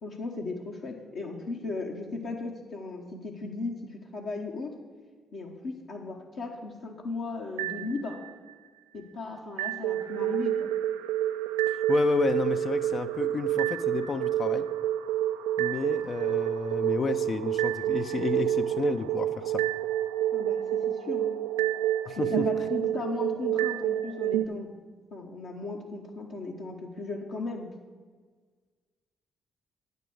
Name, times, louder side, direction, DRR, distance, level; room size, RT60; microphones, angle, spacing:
voice 1, 0.0-4.7 5.3-8.2 8.9-10.7 20.3-21.3 22.1-24.7 25.1-27.7, left 3 dB, 70° left, -2 dB, 1.1 m, -36 dB
sound 1, 7.6-8.5 9.6-24.5, right 12 dB, 85° right, 0.3 m, -28 dB
voice 2, 11.7-14.7 15.6-19.6 22.0-22.5, left 4 dB, 50° left, 8 dB, 0.4 m, -31 dB
9.0 x 5.1 x 7.8 m, 1.5 s
hypercardioid pair, 45°, 0 cm